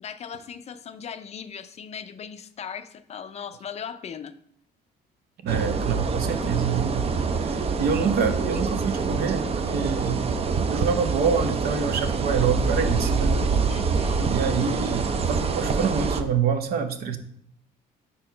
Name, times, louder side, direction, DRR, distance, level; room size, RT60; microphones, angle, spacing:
voice 1, 0.0-4.3 13.7-14.3, left 7 dB, 40° left, 11 dB, 0.5 m, -38 dB
voice 2, 5.4-10.3 10.7-13.3 14.3-17.2, right 6 dB, 65° right, 8 dB, 0.8 m, -26 dB
sound 1, 5.5-16.2, right 4 dB, 35° right, 0.6 m, -25 dB
4.6 x 4.3 x 5.4 m, 0.68 s
cardioid pair, 110°, 17 cm